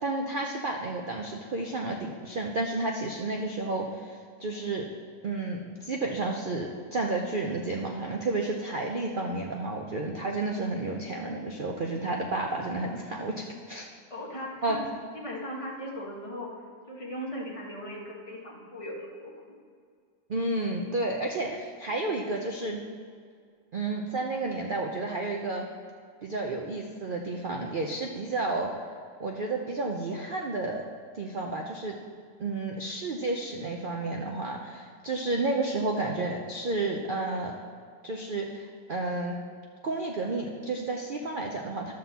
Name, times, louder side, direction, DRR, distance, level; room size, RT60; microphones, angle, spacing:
voice 1, 0.0-4.9 5.2-13.8 14.6-14.8 20.3-22.8 23.7-25.7 26.2-28.7 29.2-30.8 31.1-32.0 32.4-37.5 38.0-39.4 39.8-41.9, right 2 dB, 75° right, 0 dB, 0.4 m, -31 dB
voice 2, 14.1-14.8 15.1-16.5 16.9-19.6, equal, 20° left, -3 dB, 1.4 m, -38 dB
11.0 x 3.9 x 7.0 m, 2.1 s
omnidirectional pair, 1.8 m